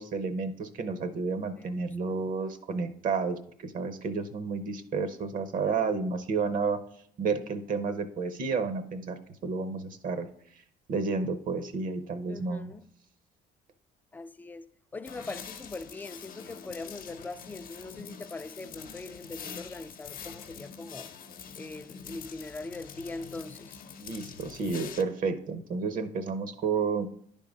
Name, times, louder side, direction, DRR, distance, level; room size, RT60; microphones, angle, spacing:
voice 1, 0.0-6.8 7.2-10.3 10.9-12.7 24.0-27.1, right 4 dB, 55° right, 0.7 m, -31 dB
voice 2, 1.6-2.2 5.7-6.1 12.3-12.9 14.1-21.1 21.6-23.8, left 3 dB, 10° left, 0.3 m, -42 dB
sound 1, 15.0-25.0, left 7 dB, 55° left, 0.8 m, -45 dB
9.9 x 3.7 x 5.1 m
cardioid pair, 110°, 17 cm